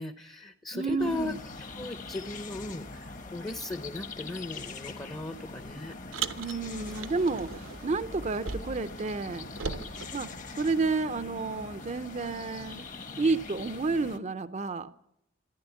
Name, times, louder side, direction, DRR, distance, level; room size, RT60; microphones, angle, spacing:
voice 1, 0.0-6.4, left 2 dB, 20° left, 9 dB, 0.7 m, -37 dB
voice 2, 0.7-1.4 6.4-9.5 10.1-10.3 10.6-12.8 13.2-14.9, right 3 dB, 35° right, 12 dB, 0.5 m, -30 dB
sound 1, 1.0-14.2, left 3 dB, 40° left, 1.1 m, -43 dB
Car, 6.1-8.9 9.2-11.0, right 5 dB, 85° right, 0.9 m, -39 dB
15.0 x 10.5 x 8.2 m, 0.77 s
head